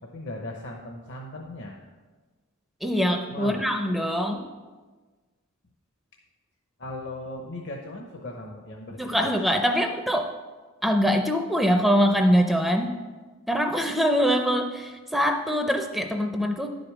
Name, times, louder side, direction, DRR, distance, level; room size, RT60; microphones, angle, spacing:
voice 1, 0.0-1.8 3.3-3.7 6.8-9.3, left 1 dB, 60° left, 1 dB, 0.9 m, -38 dB
voice 2, 2.8-4.4 9.0-10.3 10.8-13.0 13.5-16.8, equal, ahead, 4 dB, 0.5 m, -23 dB
10.5 x 5.2 x 6.0 m, 1.4 s
head